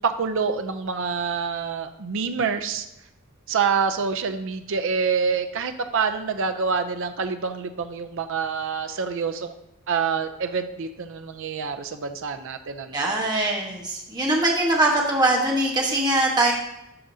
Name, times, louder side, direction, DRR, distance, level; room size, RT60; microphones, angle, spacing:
voice 1, 0.0-2.9 3.5-9.5 9.9-13.0, right 5 dB, 65° right, 8 dB, 0.5 m, -26 dB
voice 2, 12.9-16.5, right 2 dB, 20° right, -2 dB, 1.2 m, -22 dB
11.5 x 5.0 x 2.7 m, 0.87 s
head